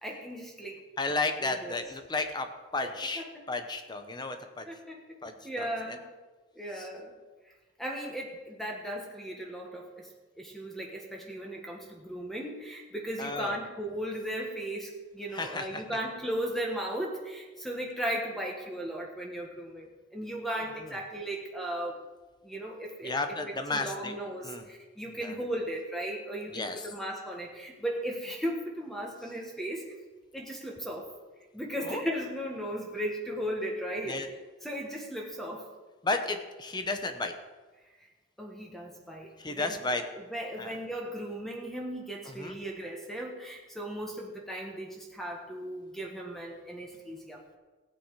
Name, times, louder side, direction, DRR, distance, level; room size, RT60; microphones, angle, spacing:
voice 1, 0.0-0.8 1.4-1.8 2.8-2.9 3.1-3.3 4.7-5.0 5.4-6.1 6.5-7.2 7.8-10.1 10.3-19.9 20.1-22.0 22.4-23.1 23.4-29.8 30.3-31.1 31.5-34.2 34.6-35.7 38.4-47.4, right 1 dB, ahead, 0 dB, 1.6 m, -36 dB
voice 2, 1.0-2.5 2.7-4.6 5.2-5.7 6.8-6.9 13.2-13.5 15.3-15.8 20.8-20.9 23.0-24.1 24.4-24.6 25.2-25.3 26.5-26.8 31.8-32.0 34.1-34.3 36.0-37.3 39.4-40.0 40.6-40.8 42.3-42.5, left 3 dB, 20° left, 7 dB, 1.0 m, -33 dB
15.5 x 9.1 x 4.8 m, 1.3 s
head